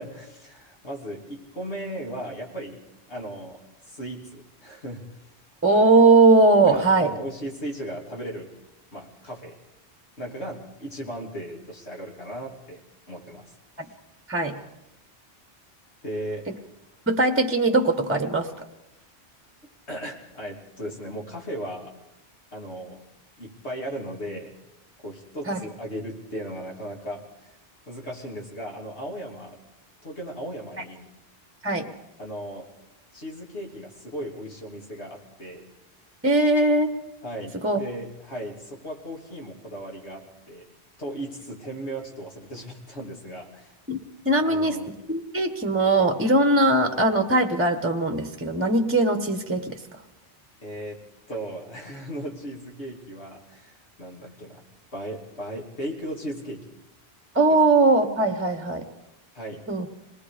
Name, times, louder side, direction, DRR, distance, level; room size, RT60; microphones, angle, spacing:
voice 1, 0.0-2.8 3.1-5.0 6.7-8.5 8.9-9.6 10.2-13.5 16.0-16.5 19.9-21.9 22.5-23.0 23.4-24.5 25.0-27.6 27.9-29.6 30.0-31.1 32.2-32.7 33.1-35.7 37.2-40.6 41.0-43.7 44.4-44.9 50.6-51.0 51.3-54.6 54.9-56.7 59.3-59.7, right 1 dB, 75° left, -1 dB, 3.4 m, -36 dB
voice 2, 5.6-7.1 14.3-14.6 17.1-18.5 25.5-25.6 31.6-31.9 36.2-36.9 37.6-37.8 43.9-44.8 45.1-49.8 57.3-58.9 59.7-59.9, right 2 dB, 10° right, 6 dB, 1.0 m, -20 dB
26.0 x 19.5 x 5.0 m, 0.91 s
omnidirectional pair, 1.1 m